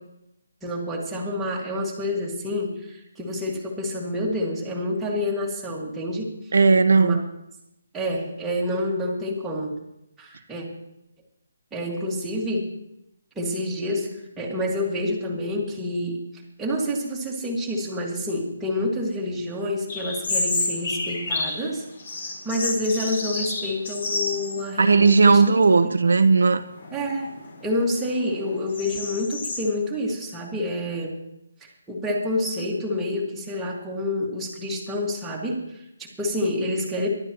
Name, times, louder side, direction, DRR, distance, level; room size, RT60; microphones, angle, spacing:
voice 1, 0.6-6.3 7.0-7.2 7.9-9.7 10.2-10.7 11.7-12.7 13.4-16.2 16.6-21.8 22.4-25.4 26.9-31.1 31.6-37.1, left 1 dB, 5° right, 2.0 m, -28 dB
voice 2, 6.5-7.2 24.8-26.6, right 4 dB, 75° right, 0.9 m, -16 dB
sound 1, 19.9-21.6 22.0-24.7 25.0-25.1 25.9-26.3 26.8-29.6, left 3 dB, 45° left, 5.3 m, -29 dB
22.5 x 12.0 x 3.0 m
hypercardioid pair, 175°, 0 cm